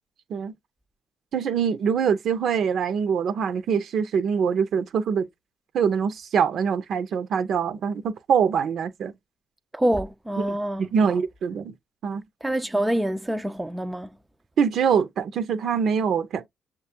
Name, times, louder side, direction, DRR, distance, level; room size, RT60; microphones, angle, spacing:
voice 1, 1.3-5.3 5.7-9.1 10.8-11.7 12.0-12.2 14.6-16.4, right 7 dB, 65° right, 0.6 m, -24 dB
voice 2, 9.7-11.2 12.4-14.1, right 1 dB, 10° right, 0.4 m, -26 dB
6.6 x 2.3 x 2.8 m
cardioid pair, 90°, 0 cm